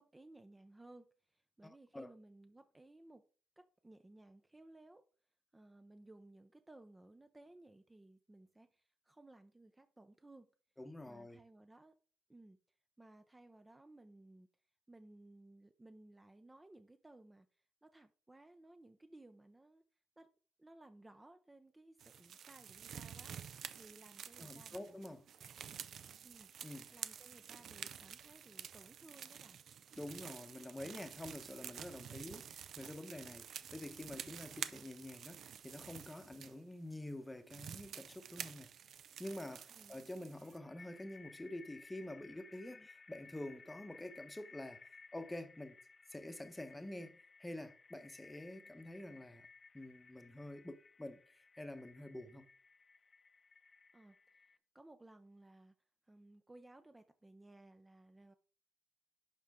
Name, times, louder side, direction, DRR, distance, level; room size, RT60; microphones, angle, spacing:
voice 1, 0.0-3.2 3.6-5.0 5.5-10.5 11.1-11.9 12.3-12.6 13.0-14.5 14.9-19.8 20.2-20.3 20.6-25.2 26.2-26.5 26.9-29.6 39.7-40.3 42.7-42.9 53.9-55.8 56.0-58.3, right 2 dB, 15° right, 0.5 m, -60 dB
voice 2, 1.6-2.1 10.8-11.4 24.4-25.3 26.6-26.9 30.0-38.7 39.2-45.8 46.1-49.5 49.7-52.5, left 1 dB, 10° left, 0.9 m, -48 dB
sound 1, 22.0-36.6 37.1-37.2 37.5-40.6, right 8 dB, 65° right, 0.5 m, -50 dB
sound 2, 40.3-54.6, left 4 dB, 30° left, 0.4 m, -60 dB
11.0 x 4.2 x 3.6 m
cardioid pair, 90°, 0 cm